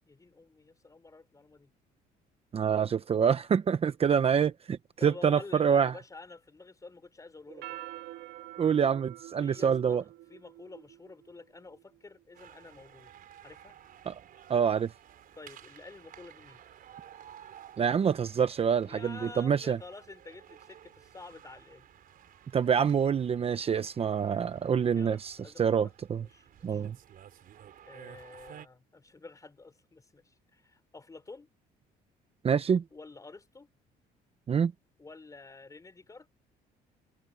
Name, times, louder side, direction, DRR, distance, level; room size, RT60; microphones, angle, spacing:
voice 1, 0.1-1.7 5.0-8.0 9.4-13.1 13.4-13.8 15.3-16.6 18.8-21.9 24.9-26.9 27.8-31.5 32.9-33.7 35.0-36.3, left 3 dB, 20° left, 4.6 m, -49 dB
voice 2, 2.5-5.9 8.6-10.0 14.1-14.2 14.5-14.9 17.8-19.8 22.5-26.2 26.6-27.0 32.4-32.8 34.5-34.7, right 7 dB, 35° right, 0.9 m, -26 dB
sound 1, 7.5-12.2, right 17 dB, 90° right, 2.7 m, -46 dB
sound 2, 12.3-28.7, right 10 dB, 55° right, 4.2 m, -54 dB
cardioid pair, 110°, 17 cm